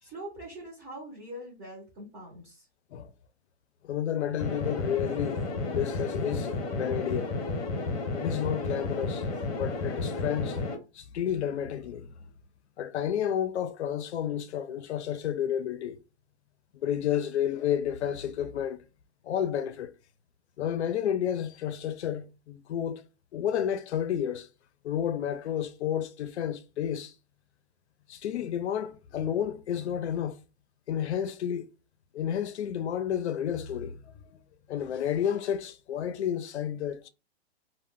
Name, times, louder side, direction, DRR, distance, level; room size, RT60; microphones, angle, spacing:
voice 1, 0.0-2.7, right 1 dB, 20° right, 0.5 m, -43 dB
voice 2, 3.8-7.5 8.1-9.2 9.5-10.6 10.9-12.1 12.8-16.0 16.7-18.8 19.2-19.9 20.6-23.0 23.3-24.5 24.8-27.1 28.1-30.4 30.9-31.7 32.1-34.0 34.7-37.1, left 9 dB, 85° left, 0.5 m, -31 dB
sound 1, 4.4-10.7, left 3 dB, 35° left, 0.7 m, -32 dB
2.1 x 2.1 x 3.5 m
hypercardioid pair, 155°, 33 cm